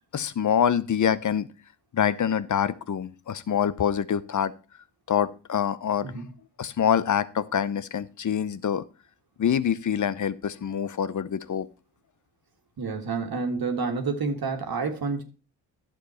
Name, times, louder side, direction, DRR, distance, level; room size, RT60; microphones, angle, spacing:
voice 1, 0.1-1.5 1.9-4.5 5.1-6.1 6.6-8.8 9.4-11.7, left 8 dB, 40° left, 0.8 m, -25 dB
voice 2, 12.8-15.2, right 4 dB, 55° right, 1.8 m, -29 dB
11.0 x 7.3 x 4.4 m
cardioid pair, 75°, 44 cm